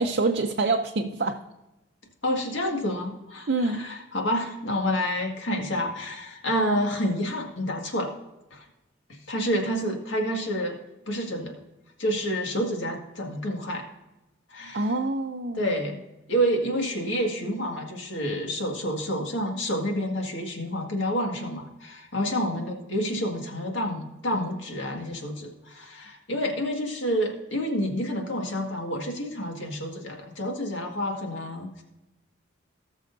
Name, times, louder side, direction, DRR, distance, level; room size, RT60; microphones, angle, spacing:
voice 1, 0.0-1.4 3.5-3.9 14.7-15.7, right 3 dB, 55° right, 2 dB, 0.6 m, -26 dB
voice 2, 2.2-8.1 8.5-8.6 9.1-10.8 11.1-11.6 12.0-13.8 14.5-14.9 15.5-16.0 16.3-31.8, equal, 70° left, 1 dB, 1.9 m, -29 dB
18.5 x 6.3 x 2.7 m, 1.0 s
head